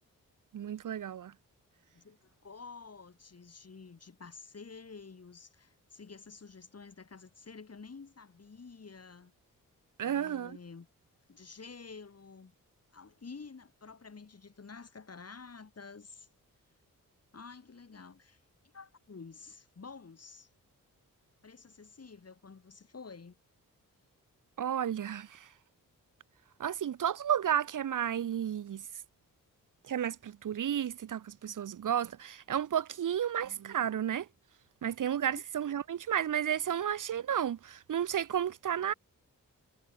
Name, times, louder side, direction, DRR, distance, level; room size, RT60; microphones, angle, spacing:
voice 1, 0.5-1.3 10.0-10.6 24.6-25.5 26.6-28.8 29.9-34.3 34.8-38.9, right 9 dB, 65° right, 0.8 m, -32 dB
voice 2, 1.9-9.3 10.0-10.9 11.3-12.5 12.9-16.3 17.3-20.5 21.4-23.4 35.2-35.4, left 4 dB, 45° left, 5.4 m, -50 dB
cardioid pair, 80°, 34 cm